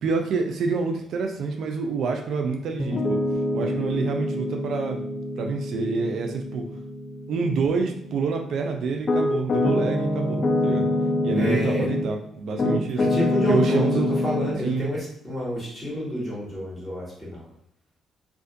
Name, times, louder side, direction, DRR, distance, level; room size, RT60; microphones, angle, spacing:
voice 1, 0.0-3.2 3.5-5.0 5.4-6.6 7.3-10.9 11.2-13.1 13.5-14.1 14.6-14.9, right 4 dB, 70° right, 3 dB, 0.3 m, -27 dB
Piano, 2.8-12.2 12.6-14.6, left 1 dB, 40° left, 0.4 m, -26 dB
voice 2, 11.4-11.9 13.0-17.4, left 1 dB, 5° left, -7 dB, 1.4 m, -28 dB
2.5 x 2.4 x 2.5 m, 0.74 s
cardioid pair, 90°, 0 cm